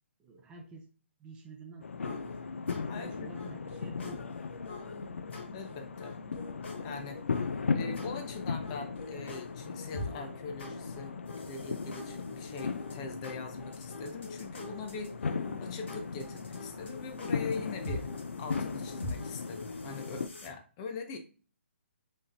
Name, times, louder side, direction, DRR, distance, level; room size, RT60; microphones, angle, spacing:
voice 1, 0.2-0.9 1.2-2.4 2.7-4.4, right 3 dB, 15° right, 2 dB, 0.5 m, -49 dB
sound 1, 1.8-20.3, left 5 dB, 75° left, 0.4 m, -38 dB
sound 2, 2.0-20.5, left 2 dB, 60° left, 1.5 m, -45 dB
voice 2, 2.8-3.6 5.5-6.2 6.8-7.2 7.7-15.3 15.6-18.1 18.4-21.2, left 4 dB, 30° left, 6 dB, 0.7 m, -42 dB
5.5 x 3.4 x 2.5 m, 0.37 s
figure-of-eight pair, 140°, 7 cm